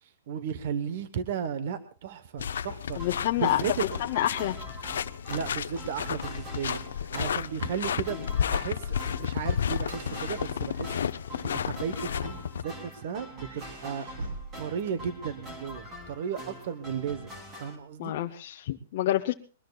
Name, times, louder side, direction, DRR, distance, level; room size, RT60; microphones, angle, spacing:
voice 1, 0.0-3.0 3.4-3.9 5.3-8.2 8.5-11.0 11.4-14.0 14.6-17.3 17.6-18.1, right 7 dB, 45° right, 11 dB, 1.1 m, -34 dB
sound 1, 2.4-12.6, left 8 dB, 90° left, 0.6 m, -32 dB
voice 2, 3.0-3.7 4.0-4.6 8.1-8.2 18.0-19.3, left 13 dB, 40° left, 2 dB, 0.8 m, -28 dB
sound 2, 3.0-17.8, equal, 15° right, 3.2 m, -44 dB
sound 3, 5.6-7.3 7.6-7.8 8.2-11.0 11.9-12.7 13.3-15.6, right 2 dB, 75° right, 3.9 m, -45 dB
22.5 x 20.0 x 2.4 m, 0.39 s
hypercardioid pair, 170°, 0 cm